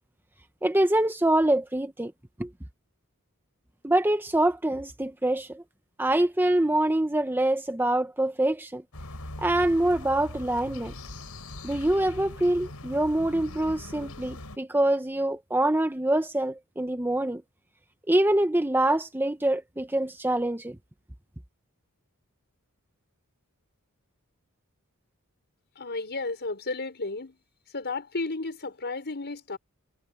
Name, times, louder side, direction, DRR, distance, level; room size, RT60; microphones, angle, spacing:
voice 1, 0.6-2.1 2.4-2.5 3.8-5.6 6.0-8.8 9.4-10.9 11.6-17.4 18.1-20.8, right 1 dB, 10° right, 0.9 m, -25 dB
sound 1, 8.9-14.6, left 1 dB, 80° left, 4.3 m, -41 dB
voice 2, 25.7-27.4 27.7-29.6, left 3 dB, 50° left, 5.2 m, -33 dB
head